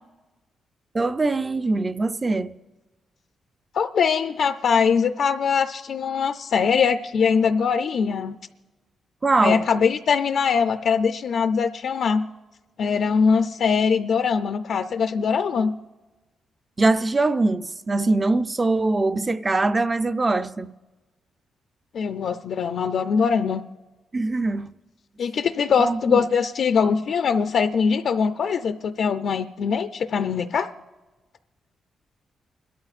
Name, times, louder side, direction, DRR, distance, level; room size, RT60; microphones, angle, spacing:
voice 1, 0.9-2.6 9.2-9.6 15.6-15.7 16.8-20.7 24.1-24.7 25.8-26.2, right 3 dB, 20° right, 0.4 m, -22 dB
voice 2, 3.7-8.4 9.4-12.2 12.8-15.7 21.9-23.6 25.2-30.7, left 6 dB, 60° left, 0.4 m, -22 dB
29.5 x 12.5 x 2.4 m
wide cardioid pair, 145°, 0 cm